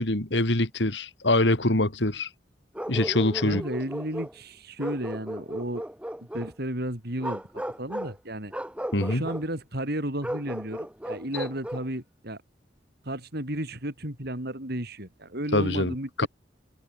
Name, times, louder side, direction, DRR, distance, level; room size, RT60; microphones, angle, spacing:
voice 1, 0.0-2.3 2.9-3.6 8.9-9.2 15.5-16.3, left 2 dB, 75° left, 3.1 m, -24 dB
Bark, 2.7-4.4 4.8-6.5 7.2-8.2 8.5-9.5 10.2-11.9, equal, 5° right, 2.3 m, -35 dB
voice 2, 3.4-5.8 6.3-7.4 7.8-8.5 9.1-12.4 13.0-16.3, right 1 dB, 60° right, 6.1 m, -33 dB
head